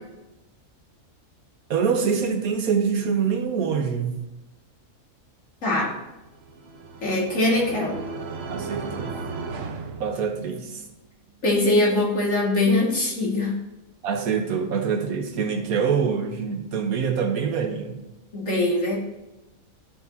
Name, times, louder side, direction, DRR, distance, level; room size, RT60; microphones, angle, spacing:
voice 1, 1.7-4.2 8.5-9.1 10.0-10.8 14.0-18.0, right 6 dB, 85° right, 4 dB, 1.4 m, -25 dB
voice 2, 5.6-5.9 7.0-8.0 11.4-13.5 18.3-19.0, left 2 dB, 65° left, -4 dB, 2.3 m, -22 dB
sound 1, 6.3-10.8, right 4 dB, 55° right, 0.8 m, -35 dB
11.5 x 4.8 x 2.7 m, 0.97 s
omnidirectional pair, 1.5 m